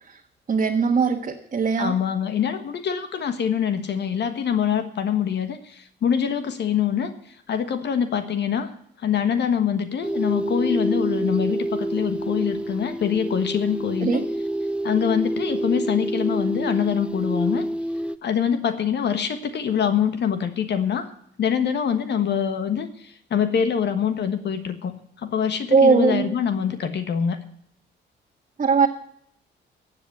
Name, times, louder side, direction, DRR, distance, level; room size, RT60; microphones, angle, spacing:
voice 1, 0.5-1.9 14.0-14.2 25.7-26.3 28.6-28.9, right 5 dB, 40° right, 1 dB, 1.5 m, -19 dB
voice 2, 1.8-8.7 9.0-14.2 14.8-17.7 18.2-21.1 21.4-27.4, left 8 dB, 60° left, 9 dB, 1.4 m, -24 dB
sound 1, 10.0-18.2, right 1 dB, 5° right, 0.5 m, -27 dB
14.5 x 8.1 x 7.9 m, 0.69 s
cardioid pair, 90°, 20 cm